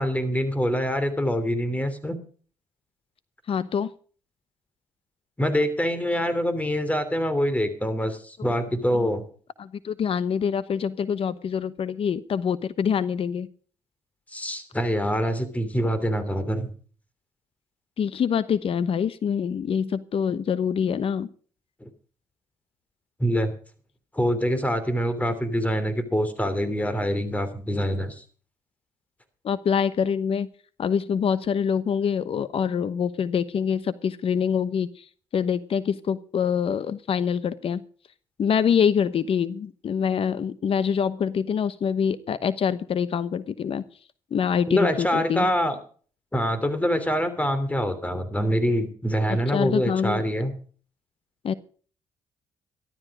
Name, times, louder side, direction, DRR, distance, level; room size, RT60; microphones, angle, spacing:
voice 1, 0.0-2.2 5.4-9.2 14.3-16.7 21.8-21.9 23.2-23.5 24.1-28.2 44.7-45.8 46.3-50.5, equal, 10° left, 12 dB, 3.2 m, -25 dB
voice 2, 3.5-3.9 8.9-9.1 9.6-13.5 18.0-21.3 29.4-30.5 30.8-35.0 35.3-37.8 38.4-43.8 44.3-45.5 49.3-50.2 51.4-51.5, left 7 dB, 55° left, 16 dB, 1.0 m, -25 dB
13.5 x 13.0 x 4.9 m, 0.43 s
supercardioid pair, 60°, 11 cm